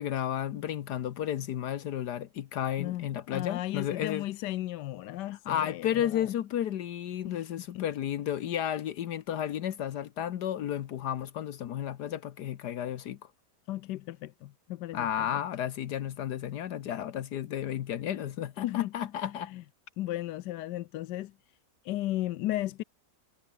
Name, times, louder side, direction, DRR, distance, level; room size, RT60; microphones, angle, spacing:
voice 1, 0.0-4.3 5.3-13.2 14.9-19.5, left 10 dB, 70° left, 1.4 m, -33 dB
voice 2, 2.8-6.3 7.2-7.8 13.7-15.3 18.6-18.9 19.5-19.6 20.0-21.3 21.8-22.8, left 15 dB, 85° left, 1.2 m, -35 dB
omnidirectional pair, 1.8 m